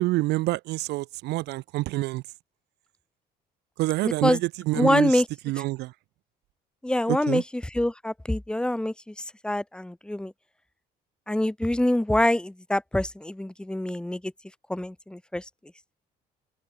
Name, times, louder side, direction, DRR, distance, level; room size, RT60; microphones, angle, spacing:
voice 1, 0.0-2.2 3.8-5.9 7.1-7.4, right 19 dB, 85° right, 1.6 m, -27 dB
voice 2, 4.0-4.4 4.7-5.2 6.8-7.4 7.7-8.9 9.4-10.3 11.3-14.2 14.7-15.4, left 1 dB, 5° left, 1.4 m, -25 dB
open air
cardioid pair, 110°, 17 cm